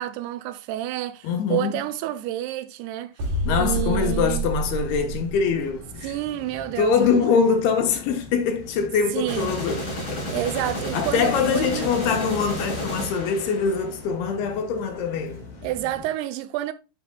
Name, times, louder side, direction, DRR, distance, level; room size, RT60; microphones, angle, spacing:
voice 1, 0.0-3.1 3.6-4.5 6.0-7.3 9.1-9.6 10.3-11.9 15.6-16.7, right 14 dB, 85° right, 2.5 m, -29 dB
voice 2, 1.2-1.9 3.4-6.1 6.8-9.8 10.1-10.4 10.9-15.4, left 6 dB, 75° left, 2.9 m, -23 dB
sound 1, 3.2-5.9, right 1 dB, 60° right, 3.7 m, -28 dB
sound 2, 3.4-16.1, left 4 dB, 55° left, 4.8 m, -43 dB
sound 3, 9.2-14.1, equal, 30° left, 3.3 m, -31 dB
10.5 x 5.9 x 2.2 m
omnidirectional pair, 4.8 m